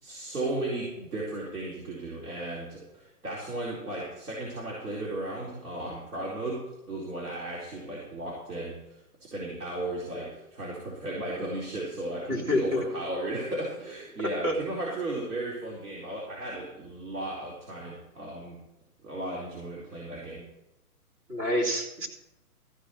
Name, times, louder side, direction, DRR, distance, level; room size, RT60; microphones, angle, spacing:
voice 1, 0.0-6.6 6.9-18.6 19.0-20.4, right 2 dB, 90° right, -6 dB, 4.4 m, -35 dB
voice 2, 12.3-12.8 14.4-14.5 21.3-22.1, left 1 dB, 20° right, 0 dB, 2.5 m, -27 dB
15.0 x 5.2 x 8.6 m, 0.88 s
hypercardioid pair, 150°, 45 cm